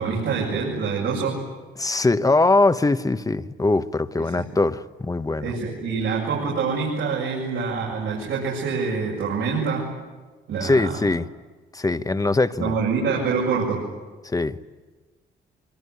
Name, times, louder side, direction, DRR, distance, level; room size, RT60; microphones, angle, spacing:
voice 1, 0.0-1.4 4.3-4.4 5.4-9.9 10.5-11.0 12.6-13.9, right 5 dB, 80° right, -4 dB, 7.4 m, -25 dB
voice 2, 1.8-5.5 10.6-11.3 11.7-12.8 14.2-14.6, left 2 dB, 15° left, 12 dB, 1.0 m, -22 dB
24.5 x 24.0 x 9.7 m, 1.3 s
cardioid pair, 90°, 20 cm